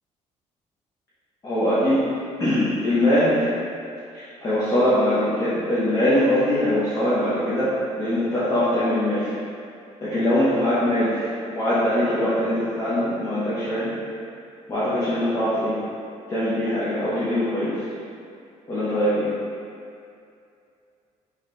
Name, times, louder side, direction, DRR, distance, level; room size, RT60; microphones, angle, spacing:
voice 1, 1.4-2.1 2.4-3.5 4.1-9.3 10.0-13.9 14.7-15.8 16.3-17.8 18.7-19.3, left 1 dB, 25° left, -12 dB, 0.7 m, -22 dB
4.2 x 2.8 x 3.1 m, 2.5 s
cardioid pair, 180°, 13 cm